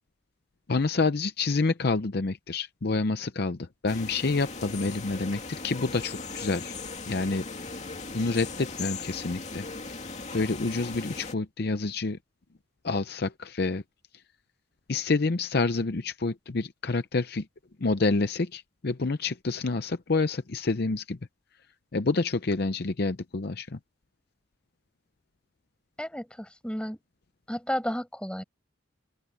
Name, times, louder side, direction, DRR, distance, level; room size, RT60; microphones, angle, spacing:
voice 1, 0.7-6.7 7.1-7.4 8.1-9.6 10.3-12.2 12.8-13.8 14.9-17.4 17.8-21.2 21.9-23.8, left 3 dB, 50° left, 0.6 m, -28 dB
sound 1, 3.9-11.3, left 4 dB, 35° left, 2.6 m, -38 dB
voice 2, 26.0-27.0 27.5-28.4, equal, 5° left, 6.9 m, -32 dB
open air
head